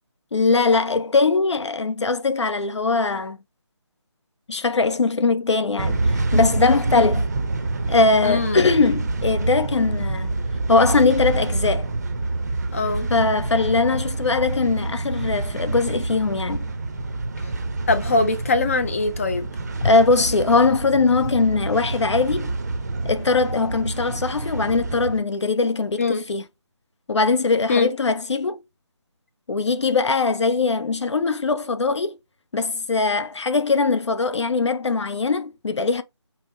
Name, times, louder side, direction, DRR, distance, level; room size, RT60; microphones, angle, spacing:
voice 1, 0.3-3.4 4.5-7.3 7.9-10.3 10.7-11.9 13.1-16.7 19.8-22.5 23.0-26.4 27.1-28.6 29.5-32.1 32.5-36.0, left 4 dB, 70° left, 0.6 m, -21 dB
sound 1, 5.8-25.2, right 2 dB, 35° right, 0.5 m, -27 dB
voice 2, 8.2-8.6 12.7-13.1 17.9-19.5 26.0-26.2 27.7-27.9, left 3 dB, 30° left, 0.4 m, -22 dB
5.6 x 2.0 x 2.4 m
figure-of-eight pair, 160°, 15 cm